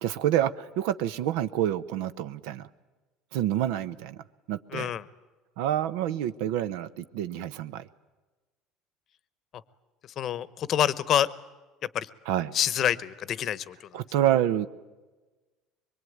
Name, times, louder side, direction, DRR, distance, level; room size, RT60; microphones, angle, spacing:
voice 1, 0.0-2.7 3.3-4.9 5.6-7.9 12.3-12.5 13.9-14.7, right 11 dB, 80° right, 14 dB, 0.9 m, -28 dB
voice 2, 4.7-5.0 10.2-11.3 11.9-12.1 12.5-13.9, left 10 dB, 35° left, 19 dB, 0.9 m, -27 dB
23.5 x 23.0 x 9.4 m, 1.2 s
cardioid pair, 165°, 0 cm